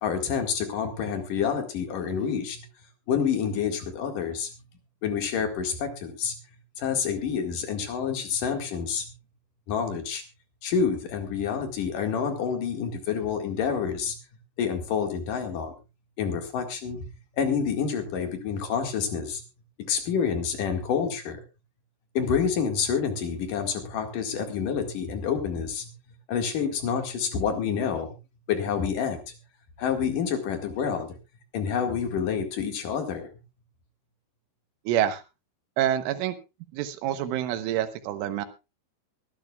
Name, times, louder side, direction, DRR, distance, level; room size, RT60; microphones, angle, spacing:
voice 1, 0.0-2.6 3.1-4.5 5.0-6.4 6.8-9.1 9.7-10.2 10.6-14.1 14.6-15.7 16.2-17.1 17.3-19.4 19.8-21.4 22.1-25.9 26.3-28.2 28.5-29.4 29.8-31.1 31.5-33.3, left 7 dB, 55° left, 5 dB, 3.0 m, -28 dB
voice 2, 34.9-35.2 35.8-36.4 36.7-38.5, right 11 dB, 90° right, 10 dB, 3.6 m, -27 dB
23.5 x 12.0 x 2.4 m, 0.27 s
omnidirectional pair, 5.5 m